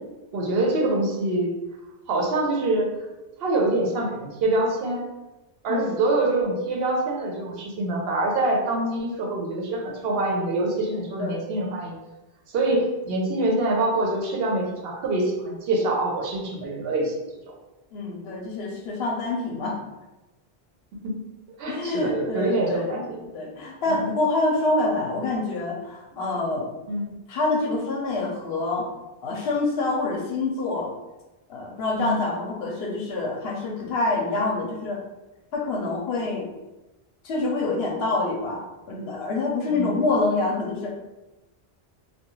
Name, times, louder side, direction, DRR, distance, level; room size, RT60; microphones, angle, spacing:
voice 1, 0.3-1.5 2.1-2.9 3.4-5.0 5.6-11.9 12.5-17.1 17.5-17.6 20.9-21.2 21.6-23.2 23.9-24.0 26.1-26.3 26.9-27.1 31.9-32.2 39.7-40.0, right 2 dB, 75° right, 0 dB, 0.8 m, -25 dB
voice 2, 17.9-19.8 21.7-23.1 23.3-26.7 27.3-28.9 29.2-30.9 31.5-35.0 35.5-36.5 37.2-41.0, left 2 dB, 80° left, -1 dB, 0.8 m, -26 dB
2.3 x 2.2 x 3.0 m, 1.1 s
omnidirectional pair, 1.0 m